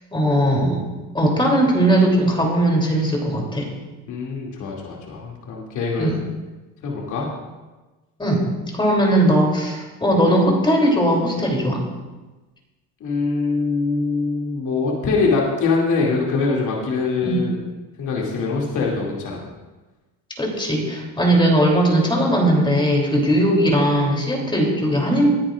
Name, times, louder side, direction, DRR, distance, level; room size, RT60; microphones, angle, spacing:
voice 1, 0.1-0.8 1.1-3.7 6.0-6.2 8.2-8.5 8.7-11.8 17.2-17.4 20.4-25.3, right 1 dB, 15° left, 0 dB, 3.1 m, -19 dB
voice 2, 4.1-6.1 6.8-7.3 13.0-17.6 18.0-19.4, left 4 dB, 55° left, -2 dB, 2.6 m, -23 dB
20.0 x 10.0 x 2.5 m, 1.2 s
cardioid pair, 115°, 36 cm